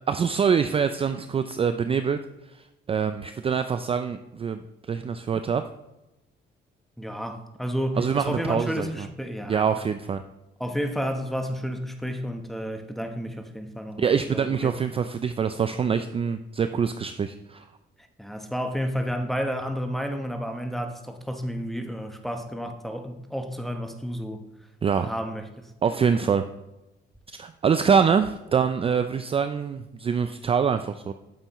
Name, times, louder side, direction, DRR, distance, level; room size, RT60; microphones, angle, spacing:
voice 1, 0.1-2.2 2.9-4.6 4.9-5.6 8.0-9.1 9.5-10.2 14.0-17.7 24.8-25.1 25.8-26.4 27.3-31.1, right 6 dB, 30° right, 0.3 m, -24 dB
voice 2, 7.0-9.9 10.6-14.7 18.2-24.4 25.0-25.7, equal, ahead, 0.9 m, -31 dB
8.9 x 6.9 x 3.0 m
cardioid pair, 90°, 20 cm